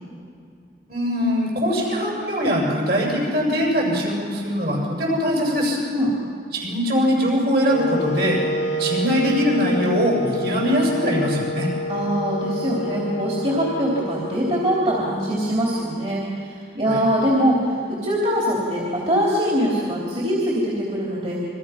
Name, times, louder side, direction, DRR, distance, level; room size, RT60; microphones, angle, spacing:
voice 1, 0.9-5.8 6.5-8.4 8.8-11.7 16.9-17.0, equal, 50° right, -3 dB, 7.3 m, -21 dB
Wind instrument woodwind instrument, 7.7-15.7, left 1 dB, 75° left, 1.6 m, -29 dB
voice 2, 11.9-21.4, equal, 35° right, -4 dB, 3.5 m, -23 dB
29.0 x 23.5 x 5.9 m, 2.4 s
head